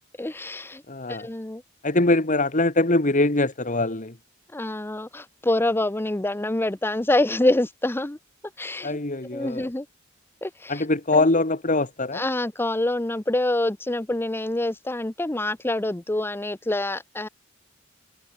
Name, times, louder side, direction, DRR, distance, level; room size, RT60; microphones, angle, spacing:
voice 1, 0.2-0.8 1.1-1.6 4.5-8.2 8.6-9.0 9.3-9.9 10.4-10.8 11.1-11.3 12.1-17.3, left 1 dB, 10° left, 0.6 m, -26 dB
voice 2, 0.9-1.3 1.8-4.2 8.8-9.7 10.7-12.2, left 2 dB, 40° left, 2.1 m, -23 dB
head